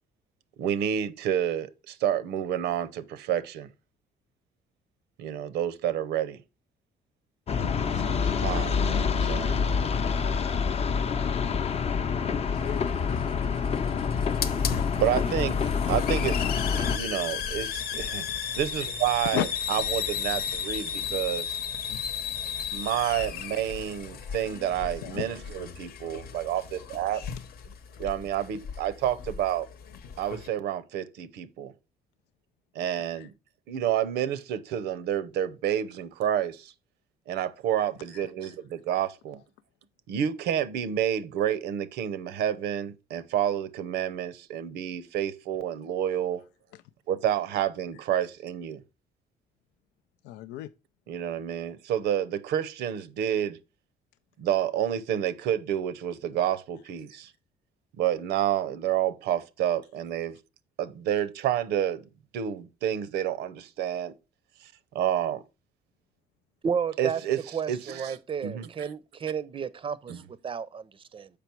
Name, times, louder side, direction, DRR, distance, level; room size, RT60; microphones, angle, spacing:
voice 1, 0.6-3.7 5.2-6.4 7.9-8.0 8.4-9.6 15.0-15.6 15.9-16.4 16.7-18.2 18.5-21.4 22.7-27.2 28.0-29.7 30.2-31.7 32.8-33.3 33.7-36.7 37.3-39.4 40.1-46.4 47.1-48.8 51.1-53.6 54.4-57.3 58.0-60.4 60.8-62.0 62.3-64.1 64.9-65.4 67.0-67.4 67.7-68.2 68.4-68.7 70.1-70.2, right 10 dB, 80° right, 0.7 m, -29 dB
sound 1, 7.5-17.0, left 6 dB, 35° left, 0.7 m, -27 dB
voice 2, 12.4-13.0 19.3-19.5 25.0-25.2 33.2-33.3 37.8-38.5 46.7-46.8 50.2-50.7, left 13 dB, 85° left, 0.4 m, -34 dB
Hiss, 12.6-30.5, left 7 dB, 65° left, 0.9 m, -35 dB
voice 3, 66.6-67.2 67.5-71.3, right 7 dB, 30° right, 0.5 m, -32 dB
7.0 x 5.1 x 4.4 m
cardioid pair, 110°, 17 cm